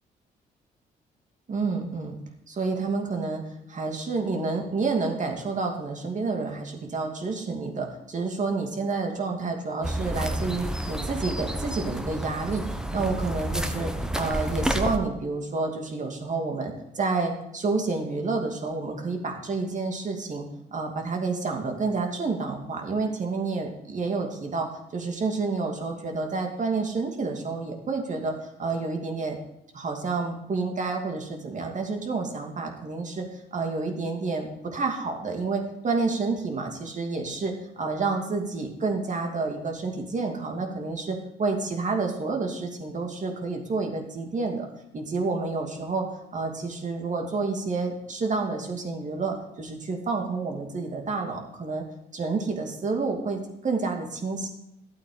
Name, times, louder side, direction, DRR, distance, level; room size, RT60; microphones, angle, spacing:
voice 1, 1.5-2.2 2.5-3.4 3.7-12.6 12.9-20.4 20.7-29.4 29.7-44.7 44.9-51.8 52.1-54.5, right 3 dB, 45° right, 2 dB, 2.5 m, -29 dB
sound 1, 9.8-15.0, right 1 dB, 5° right, 1.1 m, -30 dB
12.5 x 8.4 x 5.0 m, 0.82 s
cardioid pair, 80°, 18 cm